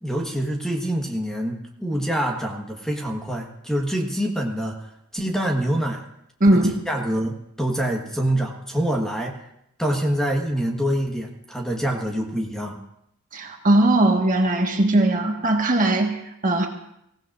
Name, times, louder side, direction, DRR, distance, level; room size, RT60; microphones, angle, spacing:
voice 1, 0.0-4.9 5.1-6.0 6.9-9.4 9.8-12.8, right 1 dB, ahead, 1 dB, 1.4 m, -25 dB
voice 2, 6.4-6.7 13.3-16.7, right 1 dB, 40° right, 2 dB, 1.6 m, -19 dB
24.5 x 16.5 x 2.6 m, 0.77 s
head